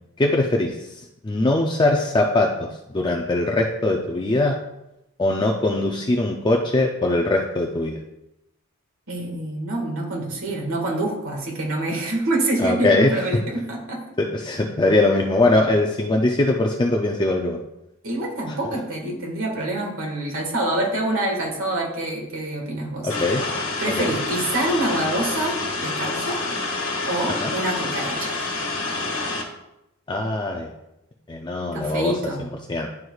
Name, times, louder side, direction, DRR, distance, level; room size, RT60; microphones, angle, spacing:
voice 1, 0.2-0.9 1.2-2.7 2.9-4.6 5.2-8.0 12.6-13.1 14.2-17.6 23.0-23.4 24.0-24.1 27.4-27.5 30.1-30.7 31.3-32.2 32.7-32.9, left 2 dB, 20° left, 1 dB, 0.4 m, -21 dB
voice 2, 9.1-14.0 18.0-23.1 23.8-26.4 27.1-28.4 31.7-32.5, right 1 dB, 65° right, -1 dB, 1.8 m, -26 dB
sound 1, 23.1-29.4, left 3 dB, 65° left, 1.6 m, -27 dB
11.0 x 4.7 x 2.4 m, 0.89 s
head